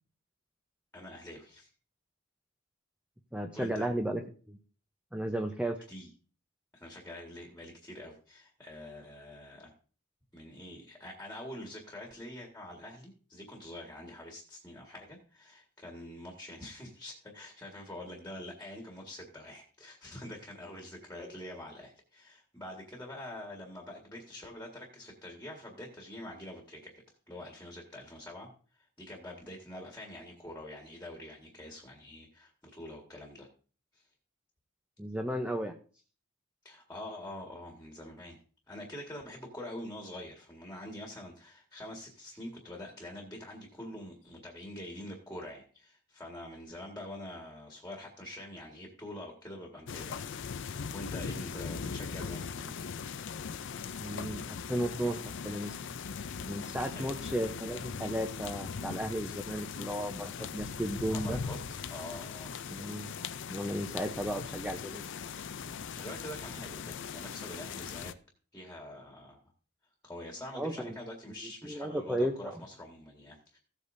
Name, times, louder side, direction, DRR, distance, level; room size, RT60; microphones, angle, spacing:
voice 1, 0.9-1.7 3.5-3.9 5.9-6.1 6.7-9.7 10.3-26.9 27.3-33.5 33.9-34.1 36.6-38.4 38.7-50.3 50.7-52.9 56.7-57.2 61.1-62.5 65.9-68.1 68.5-69.4 70.0-73.6, left 1 dB, 10° left, 1 dB, 1.8 m, -45 dB
voice 2, 3.3-4.2 4.5-4.6 5.1-5.8 35.0-35.7 54.0-55.8 56.5-61.4 62.7-63.1 63.5-65.0 70.6-71.0 71.6-72.5, right 1 dB, 5° right, 4 dB, 0.7 m, -34 dB
sound 1, 49.9-68.1, left 6 dB, 55° left, 0.5 m, -40 dB
15.5 x 8.3 x 2.7 m, 0.39 s
head